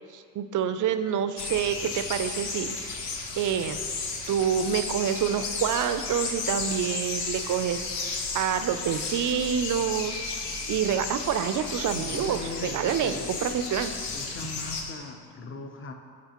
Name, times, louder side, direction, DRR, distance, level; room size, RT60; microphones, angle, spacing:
voice 1, 0.1-3.8 4.3-10.3 10.7-13.9, right 8 dB, 50° right, 10 dB, 0.5 m, -28 dB
sound 1, 1.4-14.8, left 4 dB, 80° left, 0.9 m, -34 dB
voice 2, 11.9-13.3 14.1-15.9, left 3 dB, 30° left, 5 dB, 0.7 m, -39 dB
8.2 x 4.9 x 2.9 m, 2.1 s
supercardioid pair, 65°, 42 cm